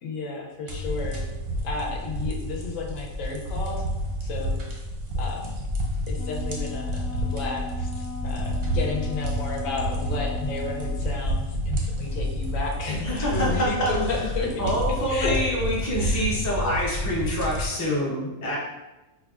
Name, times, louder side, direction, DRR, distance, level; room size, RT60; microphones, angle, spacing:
voice 1, 0.0-1.3 1.6-3.8 4.3-4.5 5.2-5.5 6.1-7.9 8.2-14.5 15.1-15.4 16.0-16.3 16.6-16.8, left 3 dB, 75° left, 0 dB, 1.0 m, -32 dB
sound 1, 0.7-17.7, equal, 55° right, 0.6 m, -29 dB
Wind instrument woodwind instrument, 5.9-11.1, left 5 dB, 85° right, 1.1 m, -39 dB
voice 2, 12.8-14.3 14.6-18.6, equal, 25° left, -5 dB, 0.4 m, -26 dB
4.4 x 2.1 x 2.3 m, 1.0 s
omnidirectional pair, 1.4 m